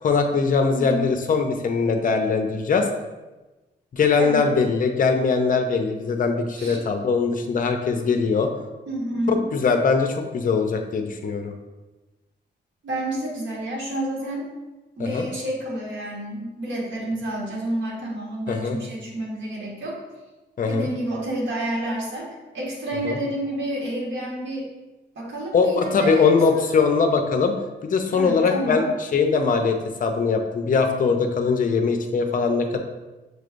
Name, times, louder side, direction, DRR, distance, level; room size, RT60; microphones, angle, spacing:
voice 1, 0.0-2.9 3.9-8.5 9.3-11.5 15.0-15.3 18.5-18.8 20.6-20.9 23.0-23.2 25.5-27.6 27.8-28.8 29.1-32.8, left 5 dB, 50° left, 5 dB, 0.6 m, -21 dB
voice 2, 0.7-1.1 4.2-4.5 6.5-6.8 8.9-9.4 12.8-14.4 15.0-20.0 20.7-22.3 22.5-24.7 25.1-26.7 28.1-28.9, right 1 dB, 85° right, -4 dB, 1.4 m, -29 dB
6.5 x 3.2 x 2.5 m, 1.1 s
wide cardioid pair, 125°, 18 cm